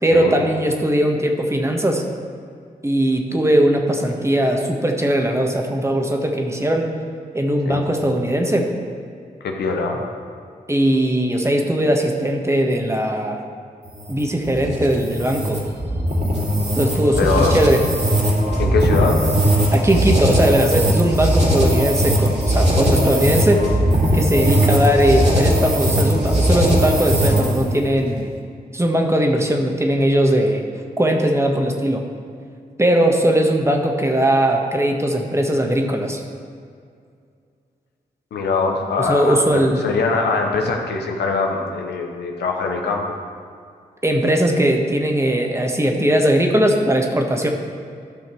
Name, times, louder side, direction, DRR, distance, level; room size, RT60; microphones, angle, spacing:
voice 1, 0.0-2.0 2.8-6.9 7.3-8.7 10.7-13.4 14.1-15.6 16.7-17.8 19.7-23.6 24.1-28.3 28.7-30.6 31.0-32.0 32.8-36.2 39.0-39.8 44.0-47.5, right 1 dB, 15° right, 2 dB, 1.5 m, -19 dB
voice 2, 9.4-10.0 17.2-17.5 18.6-19.2 24.5-24.7 38.3-43.1, left 4 dB, 90° left, 2 dB, 0.9 m, -22 dB
sound 1, 13.9-27.7, equal, 45° right, 2.6 m, -19 dB
13.0 x 5.6 x 4.6 m, 2.3 s
supercardioid pair, 45°, 17 cm